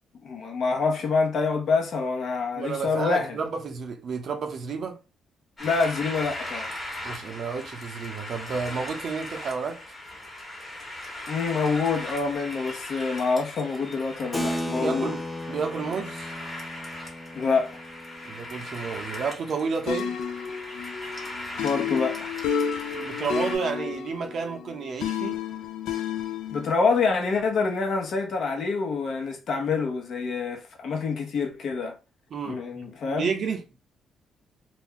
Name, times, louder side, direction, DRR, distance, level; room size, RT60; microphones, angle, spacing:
voice 1, 0.2-3.3 5.6-6.8 11.3-15.1 17.3-17.7 21.6-22.3 26.5-31.9 32.5-33.3, left 4 dB, 60° left, 0.8 m, -26 dB
voice 2, 2.6-5.0 7.0-9.8 14.8-15.2 15.5-16.3 18.2-20.2 22.9-25.4 32.3-33.6, right 5 dB, 60° right, 0.6 m, -31 dB
sound 1, 5.6-23.6, left 1 dB, 30° left, 1.1 m, -39 dB
Keyboard (musical), 14.3-20.3, left 1 dB, 10° left, 0.6 m, -36 dB
sound 2, 19.9-26.7, left 7 dB, 85° left, 0.4 m, -31 dB
2.4 x 2.2 x 3.6 m
cardioid pair, 90°, 0 cm